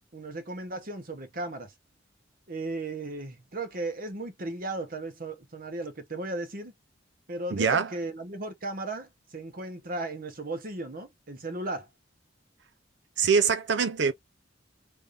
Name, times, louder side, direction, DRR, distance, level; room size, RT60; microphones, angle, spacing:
voice 1, 0.1-1.7 2.5-6.7 7.3-11.9, right 2 dB, 50° right, 1.1 m, -36 dB
voice 2, 7.5-7.9 13.2-14.1, right 5 dB, 65° right, 0.5 m, -24 dB
3.4 x 3.4 x 2.6 m
head